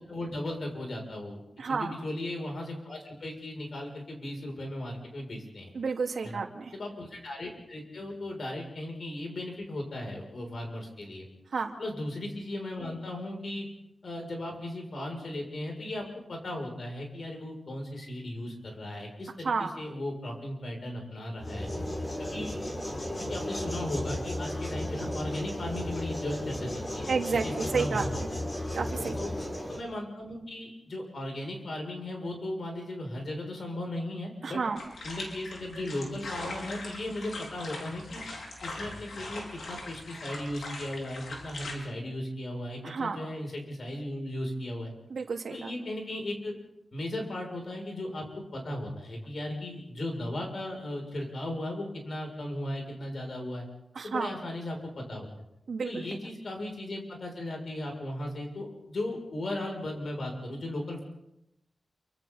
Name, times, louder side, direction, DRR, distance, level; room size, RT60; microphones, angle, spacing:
voice 1, 0.1-1.4 1.7-5.7 6.2-6.4 6.7-11.3 11.8-13.7 14.0-21.7 22.2-22.6 23.2-27.1 27.4-28.4 29.2-29.3 29.7-34.6 35.0-38.2 38.6-44.9 45.5-46.6 46.9-48.2 48.5-53.7 54.0-55.3 55.9-61.0, left 1 dB, 65° left, 1 dB, 7.1 m, -36 dB
voice 2, 1.6-2.0 5.7-6.8 11.5-11.8 19.4-19.7 27.1-28.4 28.7-29.2 34.4-34.8 42.8-43.2 45.1-45.7 53.9-54.3 55.7-56.1, right 5 dB, 85° right, 3 dB, 2.3 m, -31 dB
sound 1, 21.4-29.8, left 1 dB, 25° left, 6.0 m, -34 dB
sound 2, 34.8-41.7, left 2 dB, 85° left, 5.3 m, -41 dB
28.5 x 25.5 x 4.2 m, 0.85 s
wide cardioid pair, 75°, 0 cm